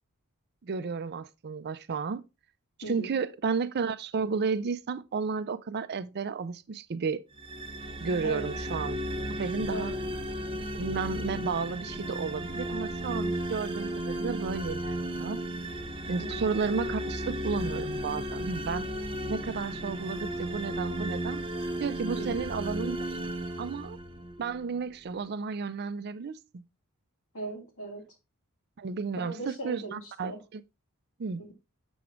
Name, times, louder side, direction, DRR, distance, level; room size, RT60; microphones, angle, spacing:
voice 1, 0.6-2.2 2.9-7.2 8.0-9.0 9.4-9.9 10.7-15.4 16.1-18.9 19.3-21.4 21.8-23.2 23.6-24.0 24.4-26.6 28.8-30.6 31.2-31.4, right 5 dB, 50° right, 0.5 m, -32 dB
voice 2, 2.8-3.1 8.2-8.5 9.7-10.0 16.2-16.5 22.1-22.5 27.3-28.1 29.2-30.4 31.4-31.5, right 2 dB, 65° left, 2.6 m, -39 dB
sound 1, 7.4-24.5, right 1 dB, 25° right, 0.8 m, -34 dB
7.0 x 6.3 x 3.1 m
head